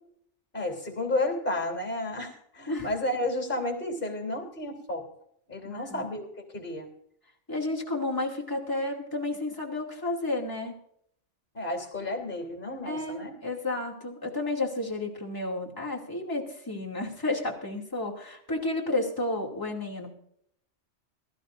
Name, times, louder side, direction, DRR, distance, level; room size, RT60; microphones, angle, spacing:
voice 1, 0.5-5.1 5.5-6.3 6.5-6.9 11.5-13.3, left 1 dB, 45° left, 3 dB, 3.6 m, -32 dB
voice 2, 5.6-6.0 7.5-10.7 12.8-20.1, left 2 dB, 15° left, -3 dB, 2.6 m, -31 dB
21.5 x 13.0 x 2.6 m, 0.67 s
omnidirectional pair, 1.2 m